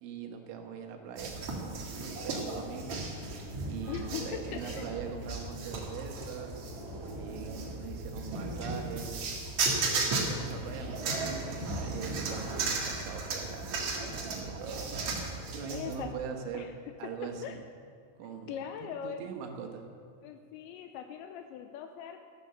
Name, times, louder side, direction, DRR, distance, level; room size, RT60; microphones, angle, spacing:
voice 1, 0.0-3.0 3.7-6.6 7.0-9.2 9.8-15.2 15.5-16.7 17.0-17.6 18.2-19.8, right 6 dB, 80° right, 3 dB, 3.7 m, -42 dB
sound 1, 1.2-16.0, right 3 dB, 50° right, 2.4 m, -35 dB
voice 2, 3.9-4.9 15.7-16.1 16.5-16.7 17.0-17.1 17.4-17.6 18.2-19.3 20.2-22.2, left 9 dB, 80° left, 7 dB, 2.8 m, -41 dB
14.5 x 11.5 x 6.9 m, 2.2 s
omnidirectional pair, 5.5 m